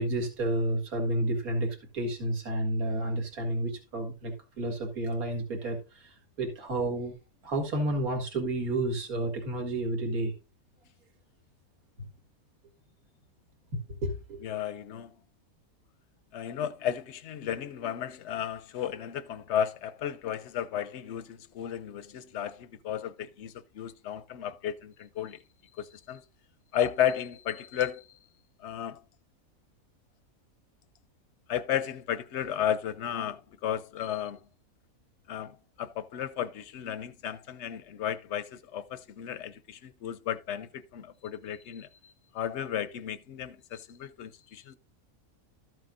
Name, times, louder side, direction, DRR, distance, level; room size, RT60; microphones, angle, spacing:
voice 1, 0.0-7.1 7.4-10.3 14.0-14.4, right 1 dB, 80° right, 2.4 m, -31 dB
voice 2, 14.4-15.1 16.3-25.4 25.8-26.2 26.7-28.2 28.6-29.0 31.5-34.4 35.3-44.8, left 9 dB, 65° left, 0.8 m, -34 dB
13.0 x 7.7 x 2.5 m
omnidirectional pair, 1.5 m